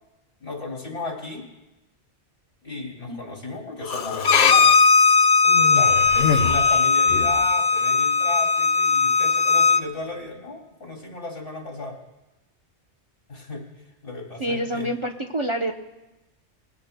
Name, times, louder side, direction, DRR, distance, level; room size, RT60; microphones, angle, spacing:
voice 1, 0.4-1.5 2.6-4.7 5.4-12.0 13.3-14.9, left 2 dB, 70° left, 0 dB, 3.0 m, -34 dB
Human voice, 3.8-4.6 5.5-7.5, left 6 dB, 85° left, 1.1 m, -27 dB
Bowed string instrument, 4.2-9.8, left 4 dB, 50° left, 0.6 m, -18 dB
voice 2, 14.4-15.7, right 1 dB, 30° right, 2 dB, 0.7 m, -27 dB
21.5 x 17.0 x 2.2 m, 1.0 s
omnidirectional pair, 1.1 m